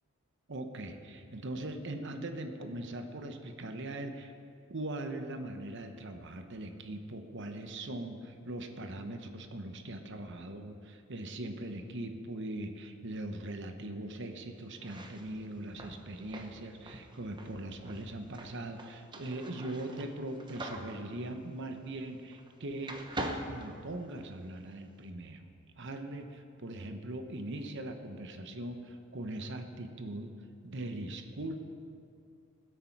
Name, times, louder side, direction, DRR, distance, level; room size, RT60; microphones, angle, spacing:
voice 1, 0.5-4.3 4.7-23.0 23.5-25.4 25.8-30.3 30.6-31.5, right 1 dB, 55° right, 6 dB, 1.0 m, -40 dB
sound 1, 14.7-22.5 22.8-24.5, right 1 dB, 20° right, 0.9 m, -44 dB
20.0 x 8.3 x 4.6 m, 2.4 s
head